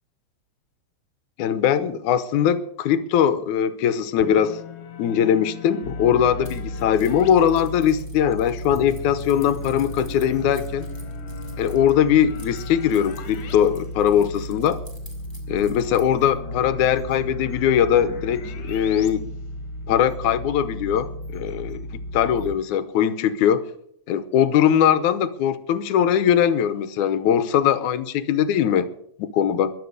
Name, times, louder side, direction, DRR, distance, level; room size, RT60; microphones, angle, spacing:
voice 1, 1.4-4.6 5.0-10.9 11.6-14.8 15.5-19.3 19.9-23.6 24.1-28.9 29.2-29.7, left 9 dB, 80° left, 13 dB, 2.3 m, -21 dB
sound 1, 4.2-7.3 8.7-13.6 13.9-14.0 15.5-19.1, left 6 dB, 60° left, 2.4 m, -40 dB
sound 2, 5.8-22.5, equal, 25° right, 5.7 m, -34 dB
Keys jangling, 6.5-16.2, equal, 5° right, 3.4 m, -51 dB
22.0 x 7.8 x 6.5 m, 0.68 s
omnidirectional pair, 3.5 m